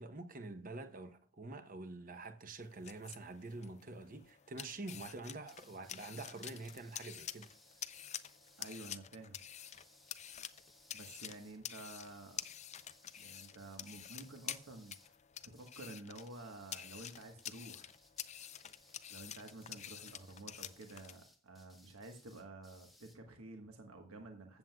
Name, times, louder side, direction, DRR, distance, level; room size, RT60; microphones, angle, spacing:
voice 1, 0.0-7.5, right 2 dB, 40° right, 0.8 m, -47 dB
sound 1, 2.6-21.2, left 10 dB, 30° left, 0.4 m, -49 dB
sound 2, 5.4-9.0 9.6-11.6 12.0-15.2 15.5-15.9 16.1-23.2, left 1 dB, ahead, 1.1 m, -65 dB
voice 2, 8.6-9.4 10.9-12.4 13.2-15.1 15.4-17.9 19.1-24.6, right 2 dB, 75° right, 1.3 m, -51 dB
15.5 x 7.5 x 2.3 m
head